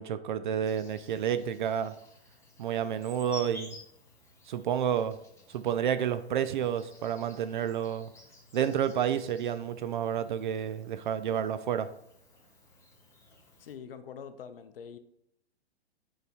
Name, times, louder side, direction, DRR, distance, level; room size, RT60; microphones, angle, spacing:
voice 1, 0.0-1.9 2.6-3.8 4.5-5.2 5.5-8.1 8.5-11.9, right 9 dB, 50° right, 12 dB, 0.4 m, -30 dB
Insect, 0.6-13.7, left 1 dB, 10° left, 1.5 m, -53 dB
voice 2, 13.6-15.0, left 7 dB, 60° left, 10 dB, 0.6 m, -44 dB
8.9 x 4.8 x 2.3 m, 0.75 s
figure-of-eight pair, 115°, 33 cm